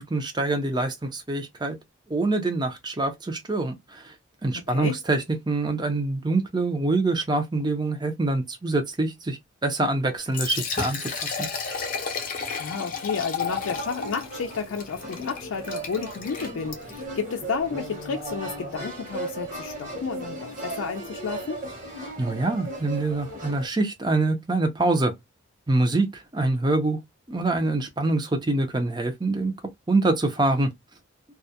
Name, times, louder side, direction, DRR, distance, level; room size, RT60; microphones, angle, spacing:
voice 1, 0.0-1.8 2.1-4.1 4.4-11.5 22.2-25.1 25.7-27.0 27.3-29.5 29.9-30.7, right 2 dB, 20° right, 0.5 m, -25 dB
voice 2, 4.6-5.0 12.2-12.3 12.6-21.6, left 5 dB, 90° left, 0.4 m, -31 dB
Liquid, 10.2-17.1, left 5 dB, 40° left, 0.6 m, -33 dB
sound 1, 13.5-23.7, right 1 dB, 40° right, 1.1 m, -36 dB
2.3 x 2.1 x 2.7 m
head